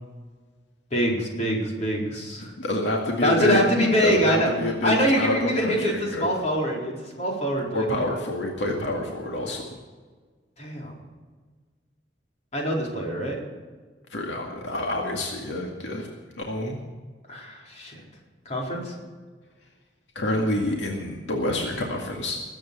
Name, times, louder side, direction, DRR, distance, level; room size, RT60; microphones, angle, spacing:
voice 1, 0.9-2.5 3.2-4.5 4.8-8.0 10.6-10.9 12.5-13.4 17.3-18.0 18.5-18.9, equal, 40° left, -2 dB, 4.4 m, -24 dB
voice 2, 2.6-3.6 4.0-6.3 7.7-9.6 14.1-16.1 16.4-16.8 20.2-22.4, left 1 dB, 80° left, 0 dB, 2.2 m, -27 dB
20.5 x 8.8 x 7.0 m, 1.4 s
head